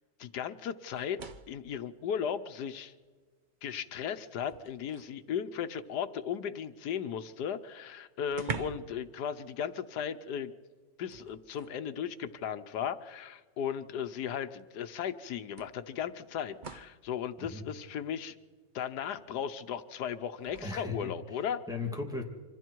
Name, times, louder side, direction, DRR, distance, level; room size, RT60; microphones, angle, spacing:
voice 1, 0.2-1.2 1.5-2.9 3.6-10.5 11.0-18.4 18.7-21.6, left 8 dB, 85° left, 10 dB, 1.4 m, -36 dB
sound 1, 0.9-1.7 3.0-3.1 3.6-5.2 7.3-7.4 7.6-7.7 8.3-9.0 9.3-9.5 11.1-11.8 12.9-13.0 14.6-14.7 15.6-17.0 20.4-20.7, right 5 dB, 40° right, 0.8 m, -44 dB
voice 2, 20.6-22.2, left 3 dB, ahead, 1 dB, 2.4 m, -38 dB
27.0 x 25.5 x 4.6 m, 1.4 s
omnidirectional pair, 1.7 m